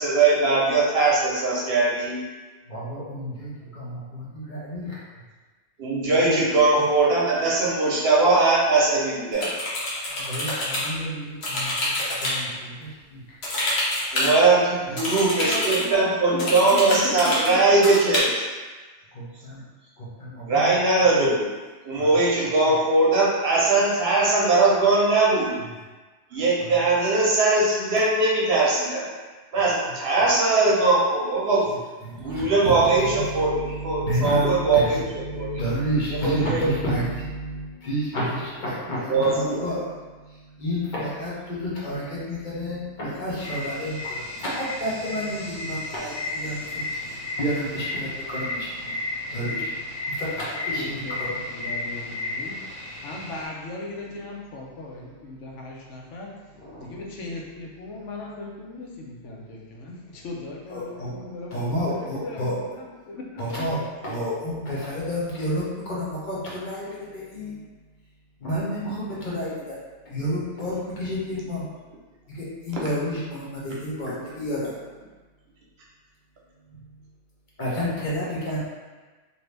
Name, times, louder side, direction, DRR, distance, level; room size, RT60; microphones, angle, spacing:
voice 1, 0.0-2.2 5.8-9.5 14.1-18.4 20.5-21.5 21.8-25.6 26.3-29.0 29.5-31.7 32.2-35.0 35.3-35.5 36.2-36.7 39.1-39.7, right 3 dB, 60° right, -5 dB, 0.9 m, -20 dB
voice 2, 2.7-5.0 6.1-6.4 10.1-13.2 14.9-15.0 19.1-19.6 20.0-20.8 21.0-21.3 22.0-22.2 26.6-26.7 32.0-51.7 56.6-57.0 60.7-61.1 61.5-62.5 63.4-67.6 68.4-69.8 70.1-71.7 72.3-74.8 76.7-77.1 77.6-78.6, equal, 45° left, -7 dB, 0.9 m, -31 dB
sound 1, 9.3-10.9 11.4-12.4 13.4-14.3 15.0-15.8 16.4-17.5 17.8-18.2, left 1 dB, 65° left, 1.1 m, -26 dB
voice 3, 14.9-17.6 50.5-52.6 53.0-56.3 56.8-63.5, left 2 dB, 80° left, -2 dB, 1.0 m, -37 dB
sound 2, 43.4-53.5, left 2 dB, 25° right, 0.9 m, -33 dB
2.7 x 2.6 x 3.2 m, 1.3 s
omnidirectional pair, 1.2 m